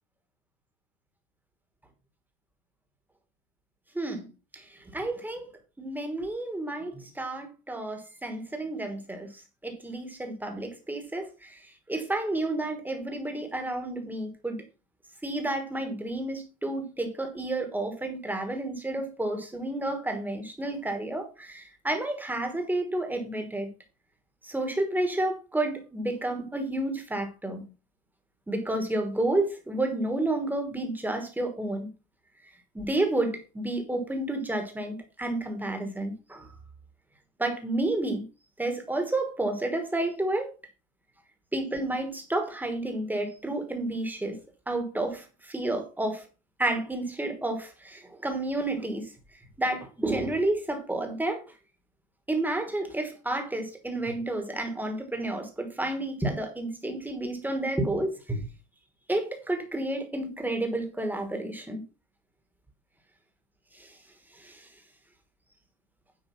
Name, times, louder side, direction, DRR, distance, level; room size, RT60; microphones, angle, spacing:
voice 1, 3.9-4.3 4.5-5.5 5.8-14.6 15.2-23.7 24.4-27.7 28.5-31.9 32.7-36.5 37.4-38.2 38.6-40.5 41.5-44.4 44.7-46.2 46.6-49.1 49.6-51.4 52.3-58.5 59.1-61.8 63.7-64.0 64.3-64.7, right 2 dB, 5° right, 1.2 m, -31 dB
9.5 x 4.8 x 5.7 m
cardioid pair, 180°, 49 cm